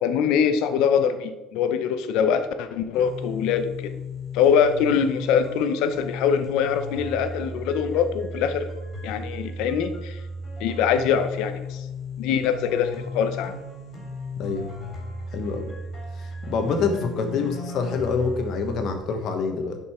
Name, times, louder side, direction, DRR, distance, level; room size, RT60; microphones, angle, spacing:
voice 1, 0.0-3.9 4.3-8.6 9.0-10.2 10.6-11.9 12.2-13.5, left 7 dB, 80° left, 9 dB, 0.8 m, -23 dB
sound 1, 2.9-18.9, left 1 dB, 30° left, 3.2 m, -35 dB
voice 2, 14.4-14.7 15.3-15.7 16.2-19.8, left 5 dB, 55° left, 6 dB, 1.3 m, -26 dB
11.0 x 5.3 x 4.4 m, 1.0 s
cardioid pair, 160°, 0 cm